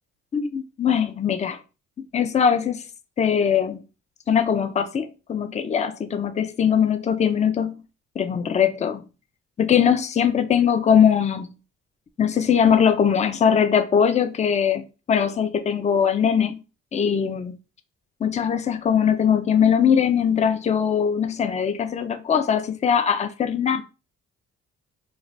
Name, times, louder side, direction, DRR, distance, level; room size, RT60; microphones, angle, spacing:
voice 1, 0.3-1.6 2.0-2.8 3.2-3.8 4.3-7.8 8.2-9.0 9.6-11.5 12.2-16.6 16.9-17.5 18.2-23.8, left 7 dB, 25° left, 0.4 m, -21 dB
3.1 x 2.4 x 2.5 m
cardioid pair, 90°, 30 cm